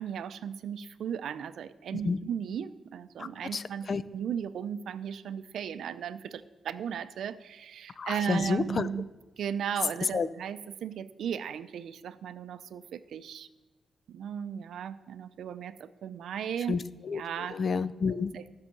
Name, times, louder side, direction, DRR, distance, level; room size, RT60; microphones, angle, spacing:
voice 1, 0.0-9.1 9.4-13.5 14.1-16.8 17.1-17.6 18.3-18.5, right 8 dB, 80° right, 13 dB, 0.5 m, -36 dB
voice 2, 3.2-4.0 8.0-8.9 10.1-10.3 16.7-18.3, left 5 dB, 40° left, 15 dB, 0.5 m, -30 dB
14.5 x 5.7 x 6.7 m, 1.2 s
cardioid pair, 120°, 0 cm